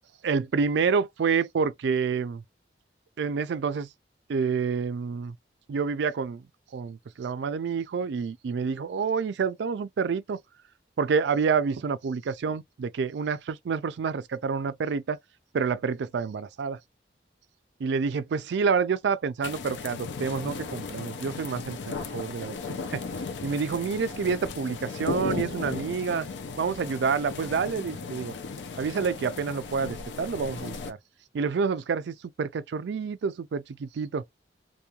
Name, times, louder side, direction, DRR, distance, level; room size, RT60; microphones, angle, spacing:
voice 1, 0.2-2.4 3.2-3.9 4.3-5.4 5.7-6.4 6.7-10.4 11.0-15.2 15.5-16.8 17.8-23.0 23.4-26.3 26.6-28.3 28.8-31.0 31.3-34.2, right 5 dB, 75° right, 0.3 m, -28 dB
sound 1, 19.4-30.9, left 4 dB, 75° left, 0.4 m, -36 dB
3.0 x 2.2 x 2.3 m
head